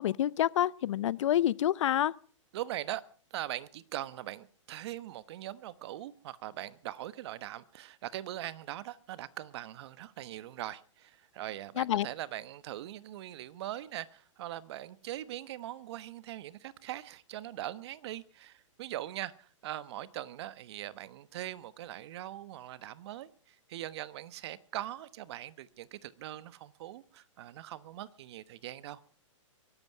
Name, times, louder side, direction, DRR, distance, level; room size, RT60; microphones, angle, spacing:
voice 1, 0.0-2.1 11.8-12.1, left 12 dB, 65° left, 0.6 m, -28 dB
voice 2, 2.5-3.0 3.3-29.0, right 13 dB, 55° right, 1.1 m, -41 dB
23.5 x 11.0 x 4.7 m
hypercardioid pair, 130°, 17 cm